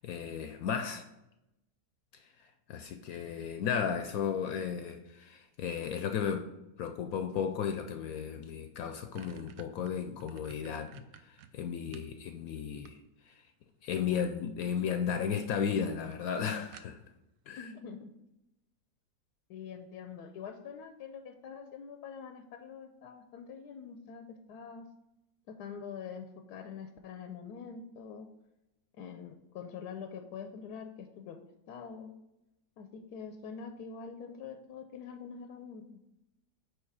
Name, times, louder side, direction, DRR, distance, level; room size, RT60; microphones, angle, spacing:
voice 1, 0.0-1.1 2.7-6.5 6.8-13.0 13.3-13.4 13.8-17.0 17.5-17.7, left 7 dB, 70° left, 7 dB, 0.9 m, -34 dB
sound 1, 8.3-8.4 8.7-12.2 12.6-13.4 14.5-14.9 15.3-15.4 15.7-15.8 16.1-16.2 16.7-17.3, right 9 dB, 70° right, 0.9 m, -53 dB
voice 2, 17.6-18.1 19.5-24.9 25.5-28.3 29.0-31.4 31.7-32.1 32.8-35.8, left 6 dB, 90° left, 6 dB, 1.2 m, -45 dB
9.1 x 3.3 x 4.7 m, 0.90 s
omnidirectional pair, 1.7 m